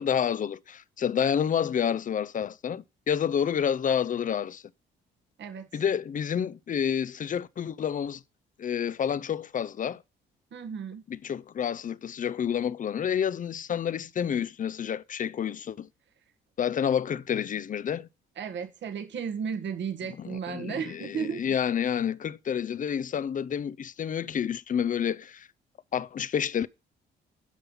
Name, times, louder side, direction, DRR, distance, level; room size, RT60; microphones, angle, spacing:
voice 1, 0.0-4.6 5.7-8.2 8.6-10.0 11.1-15.9 16.6-18.1 20.2-25.5 25.9-26.7, left 8 dB, 40° left, 0.6 m, -29 dB
voice 2, 5.4-5.8 10.5-11.0 18.4-21.4, right 7 dB, 65° right, 1.8 m, -34 dB
12.0 x 5.5 x 5.7 m
cardioid pair, 90°, 20 cm